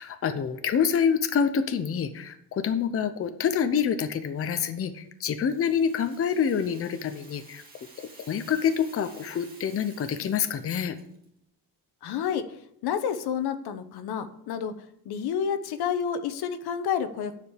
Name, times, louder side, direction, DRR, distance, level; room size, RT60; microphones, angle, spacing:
voice 1, 0.0-7.6 8.0-11.0, left 7 dB, 35° left, 9 dB, 0.7 m, -27 dB
Rattle (instrument), 5.3-11.3, right 2 dB, 25° right, 2.4 m, -52 dB
voice 2, 12.0-12.6 12.8-14.7 15.0-17.3, left 7 dB, 85° left, 10 dB, 1.0 m, -29 dB
9.6 x 5.2 x 8.2 m, 0.75 s
cardioid pair, 155°, 38 cm